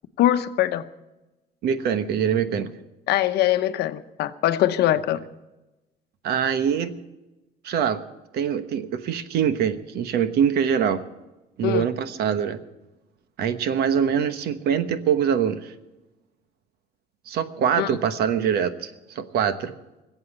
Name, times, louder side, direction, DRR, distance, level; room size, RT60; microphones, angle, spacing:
voice 1, 0.2-0.8 3.1-5.2 11.6-11.8 17.8-18.0, left 13 dB, 70° left, 10 dB, 0.9 m, -22 dB
voice 2, 1.6-2.7 6.2-7.0 7.6-8.0 8.3-11.0 11.6-12.6 13.4-15.7 17.3-19.7, right 8 dB, 65° right, 11 dB, 1.2 m, -24 dB
20.0 x 8.0 x 8.0 m, 1.0 s
cardioid pair, 155°, 18 cm